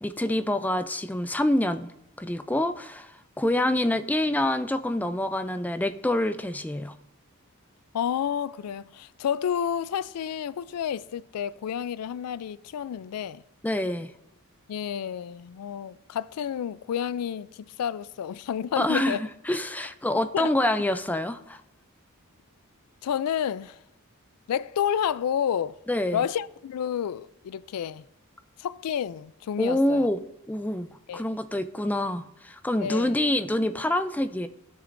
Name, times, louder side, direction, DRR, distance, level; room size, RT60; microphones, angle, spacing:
voice 1, 0.0-1.9 2.2-3.1 3.4-7.0 13.6-14.1 18.8-21.6 25.9-26.2 29.6-30.2 30.5-34.5, left 1 dB, 5° left, 0.4 m, -26 dB
voice 2, 7.9-13.4 14.7-19.2 20.3-20.5 23.0-23.8 24.5-25.8 26.1-28.0 28.6-30.1 31.1-31.2 32.8-33.2, left 8 dB, 85° left, 0.3 m, -30 dB
17.0 x 6.4 x 2.6 m
head